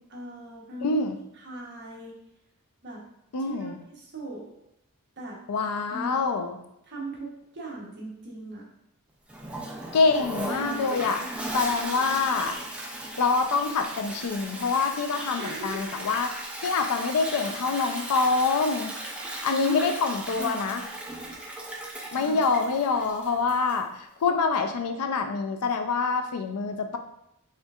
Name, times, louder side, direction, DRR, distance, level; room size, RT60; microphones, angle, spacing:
voice 1, 0.1-1.0 1.4-2.2 2.8-3.0 3.4-4.6 5.2-5.4 5.9-6.2 6.9-8.7 10.6-11.6 15.4-15.9 19.4-19.9 20.3-20.7 21.8-22.4, right 2 dB, 50° right, -3 dB, 0.9 m, -38 dB
voice 2, 0.8-1.2 3.3-3.8 5.5-6.6 9.9-11.2 11.5-12.6 13.2-18.9 19.3-20.8 22.1-27.0, left 4 dB, 90° left, 7 dB, 0.4 m, -26 dB
Toilet flush, 9.3-23.9, right 1 dB, 5° right, 0.3 m, -37 dB
4.3 x 3.5 x 2.3 m, 0.80 s
head